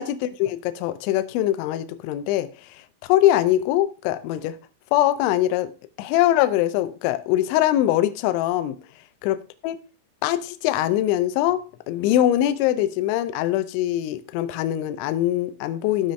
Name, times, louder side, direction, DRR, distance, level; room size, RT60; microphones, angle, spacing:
voice 1, 0.0-2.5 3.1-4.6 4.9-5.7 6.0-8.8 9.2-9.4 9.6-9.8 10.2-16.1, left 13 dB, 80° left, 2.8 m, -22 dB
15.0 x 5.6 x 3.3 m
omnidirectional pair, 5.9 m